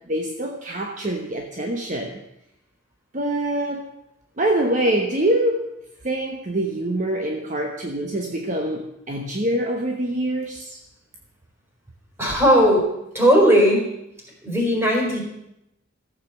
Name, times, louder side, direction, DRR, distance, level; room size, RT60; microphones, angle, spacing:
voice 1, 0.1-2.2 3.1-3.9 4.4-5.7 6.0-10.8, right 1 dB, 40° right, 2 dB, 1.1 m, -25 dB
voice 2, 12.2-12.9 13.1-13.9 14.4-15.2, equal, 15° right, -2 dB, 4.1 m, -17 dB
14.5 x 7.5 x 7.1 m, 0.85 s
head